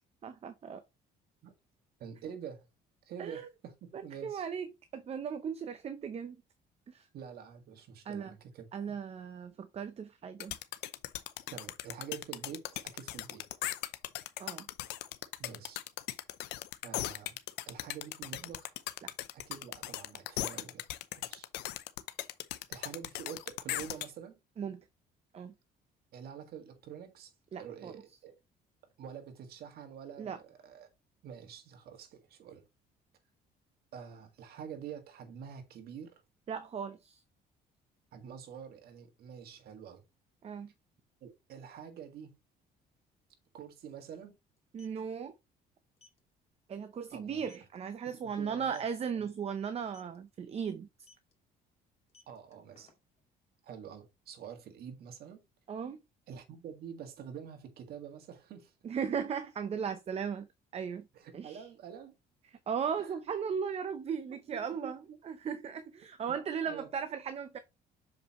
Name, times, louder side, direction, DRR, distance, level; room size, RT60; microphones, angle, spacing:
voice 1, 0.2-0.8 3.2-3.5 3.9-4.7 4.9-6.4 6.9-7.0 8.1-8.3 8.7-10.6 14.4-14.7 19.0-19.1 24.6-24.8 25.3-25.5 27.5-27.9 30.2-30.4 36.5-37.2 40.4-40.7 44.7-45.4 46.7-50.9 55.7-56.0 58.8-60.5 60.7-61.1 61.3-61.6 62.7-65.0 65.2-67.6, right 7 dB, 40° right, 0.7 m, -37 dB
voice 2, 2.0-2.7 3.0-4.5 7.1-9.0 11.5-13.4 14.8-14.9 15.4-15.8 16.8-17.4 17.7-18.7 19.3-20.8 21.2-21.5 22.7-24.4 26.1-27.3 27.6-28.3 29.0-30.9 31.2-32.6 33.9-36.2 38.1-40.0 41.2-42.4 43.5-44.3 47.1-47.4 48.1-48.8 52.3-52.9 53.6-55.4 56.3-58.7 61.1-62.2 63.0-63.2 64.3-65.2 66.3-66.4 66.6-66.9, right 8 dB, 65° right, 1.8 m, -47 dB
sound 1, 10.4-24.1, left 15 dB, 85° left, 0.7 m, -38 dB
sound 2, 43.0-43.1 43.3-43.5 44.5-45.0 46.0-46.2 46.6-46.8 47.1-47.2 47.5-47.8 48.6-49.0 49.8-50.2 51.0-51.3 52.0-53.3, left 4 dB, 40° left, 2.2 m, -61 dB
6.7 x 5.2 x 3.0 m
cardioid pair, 110°, 17 cm